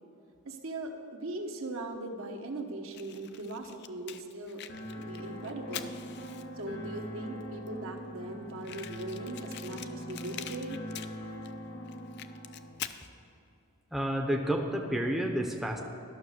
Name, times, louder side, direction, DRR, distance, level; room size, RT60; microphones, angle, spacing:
voice 1, 0.4-4.6 4.9-5.9 6.6-10.8, right 2 dB, 70° right, 2 dB, 1.1 m, -39 dB
Fire, 2.9-6.7 7.4-7.5 7.7-7.8 8.0-8.1 8.6-11.5 11.9-13.1, left 10 dB, 50° left, 0.4 m, -44 dB
sound 1, 4.7-12.7, equal, 75° left, 2.0 m, -42 dB
voice 2, 13.9-15.8, right 1 dB, ahead, 1 dB, 0.6 m, -30 dB
12.0 x 6.4 x 6.4 m, 2.7 s
head